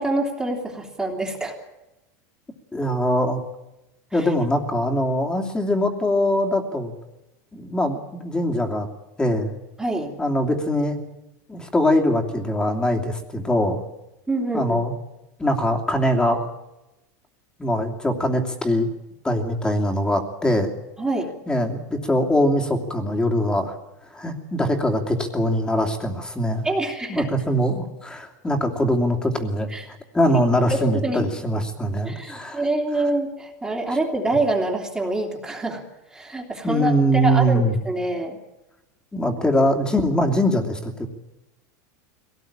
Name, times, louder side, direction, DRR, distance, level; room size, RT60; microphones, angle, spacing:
voice 1, 0.0-1.6 4.1-4.3 9.8-10.1 14.3-14.8 21.0-21.3 26.6-27.3 29.7-29.8 30.7-31.3 32.0-35.8 36.1-38.4, right 2 dB, 10° right, 0 dB, 3.1 m, -26 dB
voice 2, 2.7-3.4 4.1-6.9 7.5-8.9 9.2-9.6 10.2-11.0 11.5-13.8 14.5-14.9 15.4-16.5 17.6-18.9 19.2-20.7 21.5-23.7 24.1-26.6 27.1-29.7 30.1-32.6 36.6-37.7 39.1-41.1, equal, 10° left, 3 dB, 2.8 m, -22 dB
22.5 x 18.0 x 8.8 m, 0.96 s
supercardioid pair, 140°, 9 cm